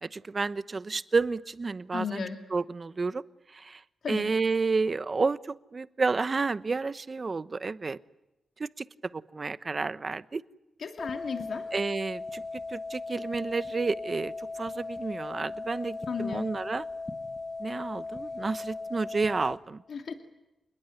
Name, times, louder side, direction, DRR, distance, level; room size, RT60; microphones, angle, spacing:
voice 1, 0.0-2.2 2.5-3.2 3.5-3.8 4.1-8.0 8.6-8.8 9.1-10.4 11.7-12.4 12.7-16.8 17.6-19.8, right 4 dB, 40° right, 14 dB, 1.0 m, -30 dB
voice 2, 1.9-2.4 4.0-4.2 10.8-11.6 16.1-16.4 19.9-20.1, left 5 dB, 70° left, 3 dB, 2.5 m, -34 dB
sound 1, 11.0-19.6, left 3 dB, 25° left, 2.6 m, -38 dB
27.5 x 21.0 x 9.6 m, 0.95 s
cardioid pair, 70°, 0 cm